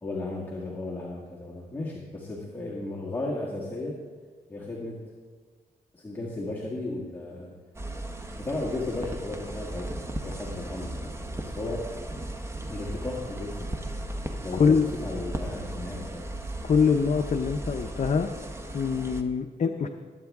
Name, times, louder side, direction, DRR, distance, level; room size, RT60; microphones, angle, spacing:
voice 1, 0.0-4.0 4.5-5.0 5.9-7.5 8.4-9.9 10.2-11.8 12.7-13.8 14.4-16.4, left 2 dB, 10° left, -5 dB, 1.8 m, -35 dB
sound 1, 7.7-19.2, right 1 dB, 15° right, 0.9 m, -36 dB
voice 2, 16.6-18.3 18.7-19.9, left 5 dB, 45° left, 5 dB, 0.6 m, -24 dB
20.5 x 9.1 x 3.6 m, 1.5 s
wide cardioid pair, 130°, 16 cm